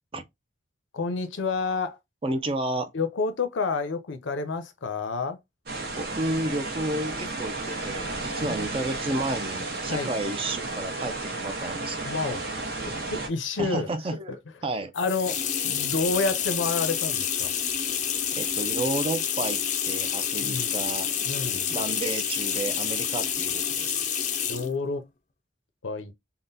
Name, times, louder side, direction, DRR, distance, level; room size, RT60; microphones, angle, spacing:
voice 1, 0.9-2.0 2.9-5.4 8.4-8.8 9.9-10.1 12.0-13.9 14.3-14.4 14.9-17.5 20.4-20.8 21.3-21.7 24.5-25.1 25.8-26.1, left 4 dB, 85° left, 0.6 m, -29 dB
voice 2, 2.2-2.9 5.9-12.1 13.6-14.4 14.6-14.9 18.4-21.2 21.7-24.0, right 2 dB, 30° right, 0.4 m, -31 dB
sound 1, 5.7-13.3, right 2 dB, 55° right, 0.9 m, -33 dB
sound 2, 14.9-24.7, left 8 dB, 40° left, 0.4 m, -28 dB
3.6 x 2.1 x 2.6 m
head